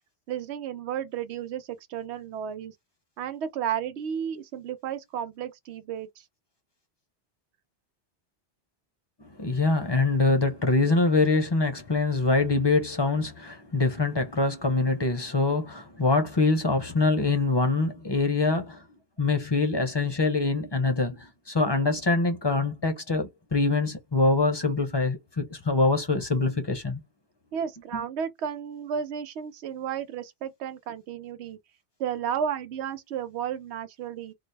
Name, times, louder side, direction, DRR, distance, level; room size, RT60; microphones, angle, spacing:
voice 1, 0.3-2.7 3.2-6.2 27.5-31.6 32.0-34.3, right 8 dB, 85° right, 0.9 m, -33 dB
voice 2, 9.4-18.8 19.2-27.0 27.9-28.0, left 3 dB, 30° left, 0.6 m, -24 dB
4.0 x 2.0 x 3.2 m
omnidirectional pair, 1.1 m